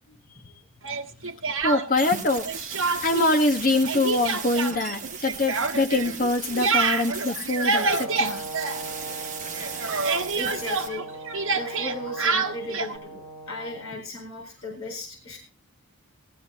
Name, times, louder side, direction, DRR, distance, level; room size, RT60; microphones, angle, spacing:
voice 1, 0.1-0.7 2.8-2.9 10.3-11.0 11.5-15.4, left 1 dB, 70° left, 2 dB, 3.7 m, -37 dB
Speech, 0.8-2.2 2.5-3.3 3.6-9.3 9.5-13.0, right 4 dB, 70° right, 1.2 m, -27 dB
voice 2, 1.6-2.5 3.0-8.4, left 2 dB, 40° left, 5 dB, 1.4 m, -24 dB
sound 1, 2.0-10.9, right 6 dB, 35° right, 1.4 m, -37 dB
Brass instrument, 7.8-14.0, right 2 dB, 10° right, 2.6 m, -40 dB
16.5 x 12.0 x 3.6 m, 0.31 s
head